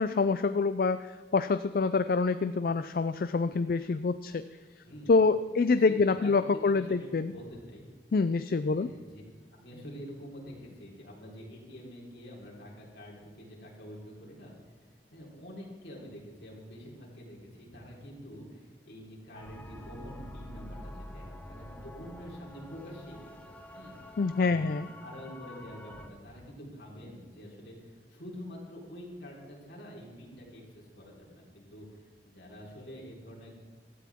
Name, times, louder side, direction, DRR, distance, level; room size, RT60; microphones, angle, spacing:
voice 1, 0.0-4.4 5.1-7.3 8.1-8.9 24.2-24.9, left 4 dB, 55° left, 11 dB, 0.4 m, -26 dB
voice 2, 5.9-7.8 8.6-9.2 9.6-14.5 15.1-24.7 25.0-32.1 32.3-33.6, equal, 70° left, -3 dB, 4.1 m, -47 dB
sound 1, 19.3-26.1, left 1 dB, 10° left, 0.8 m, -47 dB
16.0 x 13.0 x 3.6 m, 1.4 s
head